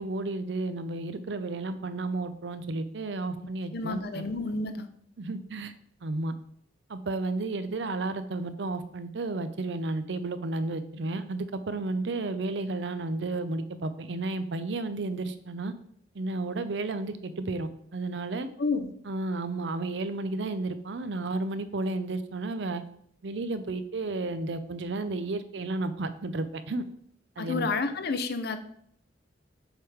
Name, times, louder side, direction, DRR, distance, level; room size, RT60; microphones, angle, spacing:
voice 1, 0.0-4.2 5.2-5.7 6.0-6.3 6.9-15.7 16.1-18.5 19.1-22.8 23.2-26.8 27.4-27.7, right 2 dB, 70° right, 11 dB, 0.6 m, -32 dB
voice 2, 3.4-4.9 18.6-18.9 27.4-28.6, left 3 dB, 60° left, 9 dB, 0.6 m, -30 dB
7.3 x 3.6 x 4.9 m, 0.65 s
head